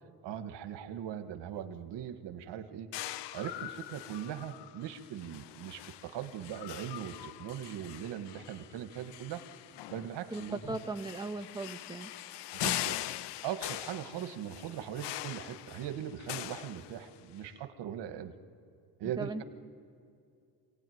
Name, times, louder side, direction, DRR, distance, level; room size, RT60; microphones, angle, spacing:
voice 1, 0.2-2.9 3.3-9.4 9.9-10.8 12.5-13.0 13.4-18.3 19.0-19.4, right 10 dB, 85° right, 8 dB, 1.6 m, -40 dB
sound 1, 2.9-17.4, left 14 dB, 85° left, 0.7 m, -42 dB
voice 2, 10.3-12.1 19.2-19.4, right 3 dB, 10° right, 5 dB, 1.2 m, -38 dB
26.5 x 17.5 x 9.4 m, 2.5 s
cardioid pair, 105°, 41 cm